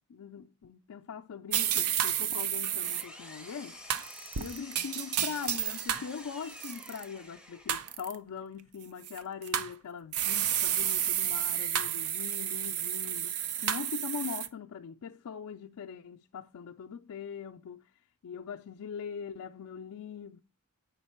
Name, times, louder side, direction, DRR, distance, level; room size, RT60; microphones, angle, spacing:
voice 1, 0.1-3.8 4.4-17.8 18.2-20.4, left 6 dB, 85° left, 0.4 m, -41 dB
sound 1, 1.5-3.0 3.9-6.1 6.5-7.0 7.7-8.2 9.0-9.7 10.1-14.5, right 10 dB, 75° right, 0.6 m, -31 dB
Engine, 2.4-8.1, left 1 dB, 5° right, 0.7 m, -49 dB
7.2 x 5.2 x 4.3 m
head